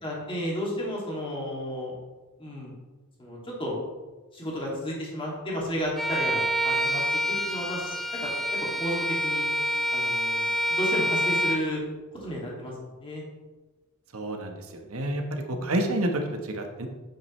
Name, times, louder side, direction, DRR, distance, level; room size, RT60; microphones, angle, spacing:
voice 1, 0.0-1.9 2.4-2.7 3.2-3.8 4.3-7.0 7.3-8.0 8.2-8.3 8.8-9.5 9.9-11.8 12.2-12.7 13.0-13.2 15.5-15.7, equal, 25° left, -4 dB, 2.5 m, -32 dB
Bowed string instrument, 6.0-11.7, equal, ahead, 0.5 m, -27 dB
voice 2, 14.1-16.9, right 1 dB, 75° right, 4 dB, 1.3 m, -29 dB
9.1 x 8.4 x 3.2 m, 1.2 s
head